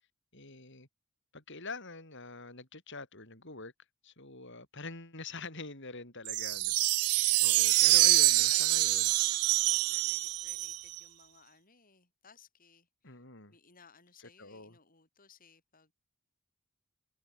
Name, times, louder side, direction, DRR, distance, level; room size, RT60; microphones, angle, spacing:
voice 1, 0.3-0.9 1.3-3.7 4.0-9.1 13.0-13.6 14.2-14.8, left 3 dB, 55° left, 8.0 m, -45 dB
sound 1, 6.3-11.0, right 19 dB, 85° right, 0.4 m, -26 dB
voice 2, 8.3-9.4 9.7-13.2 13.5-15.9, left 5 dB, 40° left, 6.9 m, -60 dB
head